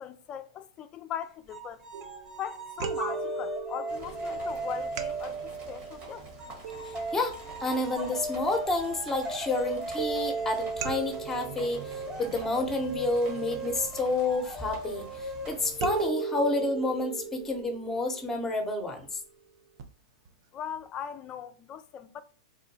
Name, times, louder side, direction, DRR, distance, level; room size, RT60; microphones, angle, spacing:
voice 1, 0.0-1.9 2.4-5.4 5.7-6.3 20.5-22.2, left 9 dB, 30° left, 0.3 m, -39 dB
sound 1, 1.5-5.9 6.4-17.7, right 1 dB, 15° right, 0.8 m, -38 dB
sound 2, 1.9-2.4 2.8-8.4 10.0-13.2 15.8-19.1 19.8-19.9 20.3-20.4, right 6 dB, 60° right, 0.5 m, -38 dB
sound 3, 3.9-16.1, right 3 dB, 40° right, 1.3 m, -47 dB
voice 2, 7.1-19.2, left 2 dB, 10° left, 0.8 m, -30 dB
3.5 x 2.2 x 2.7 m
hypercardioid pair, 120°, 3 cm